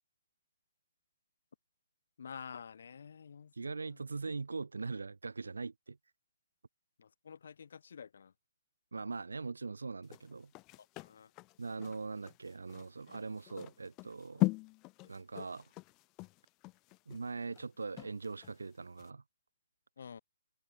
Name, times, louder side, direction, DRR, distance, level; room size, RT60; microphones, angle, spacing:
voice 1, 2.2-4.0 7.0-8.3 11.0-11.3 20.0-20.2, left 6 dB, 60° left, 6.4 m, -49 dB
voice 2, 3.5-6.0 8.9-10.5 11.6-14.5 15.1-15.7 17.1-19.2, right 4 dB, 75° right, 5.9 m, -41 dB
sound 1, 10.0-18.6 19.0-19.1, left 24 dB, 25° left, 2.8 m, -40 dB
figure-of-eight pair, 130°, 0 cm